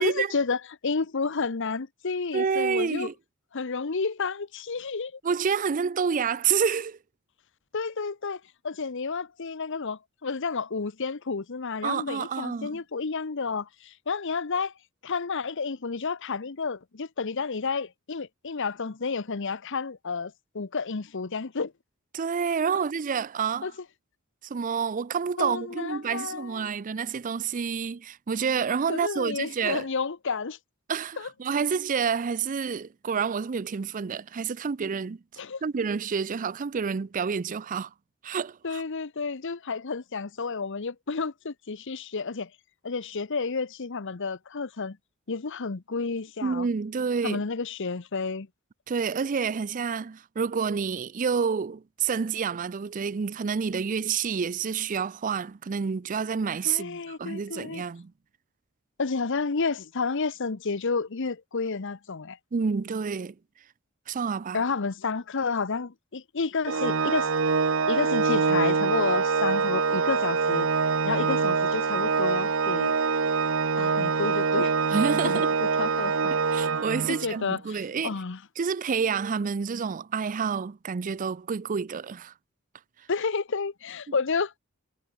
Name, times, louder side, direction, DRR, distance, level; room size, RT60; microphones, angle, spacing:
voice 1, 0.0-3.1 3.5-5.2 7.7-14.7 15.0-21.7 23.6-23.7 25.4-26.7 28.9-30.6 31.2-31.3 35.4-35.6 38.6-42.5 42.8-45.0 45.3-46.7 47.2-48.5 56.6-57.8 59.0-62.4 64.5-67.3 67.9-70.7 71.0-72.9 73.8-74.7 75.2-76.3 77.1-78.4 83.1-84.6, left 4 dB, 60° left, 0.9 m, -31 dB
voice 2, 2.3-3.1 5.2-7.0 11.8-12.8 22.1-23.7 24.4-29.9 30.9-35.2 35.6-37.9 38.2-38.8 46.4-47.4 48.9-58.1 62.5-63.3 64.1-64.6 74.9-75.5 76.3-78.2 78.6-82.3, right 6 dB, 40° right, 0.4 m, -28 dB
Organ, 66.6-77.4, right 5 dB, 65° right, 0.9 m, -25 dB
head